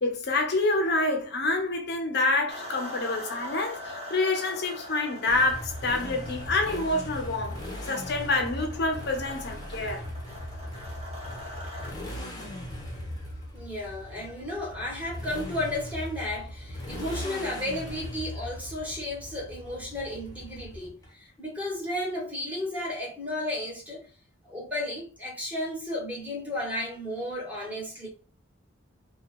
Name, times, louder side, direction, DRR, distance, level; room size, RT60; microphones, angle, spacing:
voice 1, 0.0-7.6 7.9-10.0, left 2 dB, 55° left, 0.8 m, -27 dB
sound 1, 2.5-11.9, left 1 dB, 30° right, 1.3 m, -42 dB
Motorcycle, 5.3-21.1, left 1 dB, 20° left, 1.0 m, -39 dB
voice 2, 13.5-24.1 24.4-28.1, left 1 dB, 10° right, 1.5 m, -33 dB
3.1 x 2.4 x 4.2 m
head